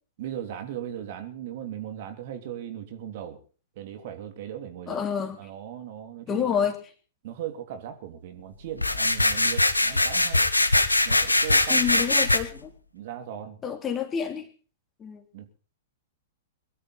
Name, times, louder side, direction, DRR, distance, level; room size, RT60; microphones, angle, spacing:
voice 1, 0.2-3.4 3.7-5.0 5.4-6.7 7.2-10.4 11.0-12.2 12.9-13.6 15.3-15.5, right 10 dB, 50° right, 6 dB, 3.3 m, -38 dB
voice 2, 4.9-5.4 6.3-6.8 11.7-12.7 13.6-14.5 15.0-15.2, left 8 dB, 20° left, 6 dB, 2.9 m, -28 dB
sound 1, 8.8-12.4, left 2 dB, 85° left, 1.6 m, -22 dB
23.0 x 12.5 x 4.2 m, 0.39 s
figure-of-eight pair, 105°, 0 cm